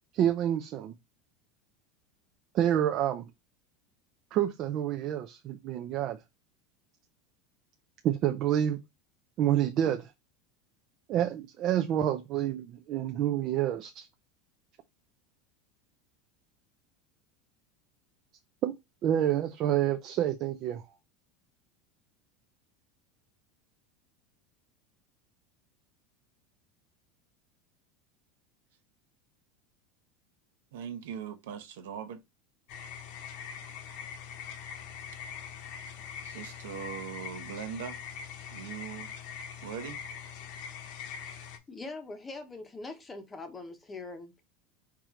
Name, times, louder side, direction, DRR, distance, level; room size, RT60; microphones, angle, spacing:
voice 1, 0.1-0.9 2.5-3.3 4.3-6.2 8.0-8.8 9.4-10.1 11.1-14.1 18.6-18.8 19.0-20.8, right 11 dB, 40° right, 0.5 m, -28 dB
voice 2, 30.7-32.2 36.2-38.0 38.5-39.1 39.6-40.0, right 8 dB, 85° right, 1.0 m, -40 dB
sound 1, 32.7-41.6, left 7 dB, 55° left, 0.9 m, -42 dB
voice 3, 41.2-44.4, left 3 dB, 15° left, 0.9 m, -43 dB
4.7 x 3.0 x 3.7 m
supercardioid pair, 160°, 0 cm